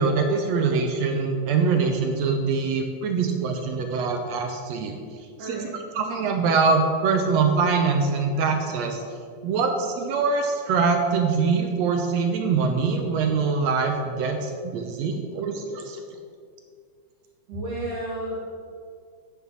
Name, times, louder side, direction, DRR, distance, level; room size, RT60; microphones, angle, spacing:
voice 1, 0.0-5.0 5.4-5.7 6.0-9.0 9.4-16.2, right 4 dB, 75° right, 4 dB, 1.7 m, -23 dB
voice 2, 5.4-5.8 17.5-18.4, right 1 dB, 50° right, -6 dB, 3.1 m, -31 dB
9.1 x 6.8 x 6.0 m, 2.2 s
omnidirectional pair, 3.5 m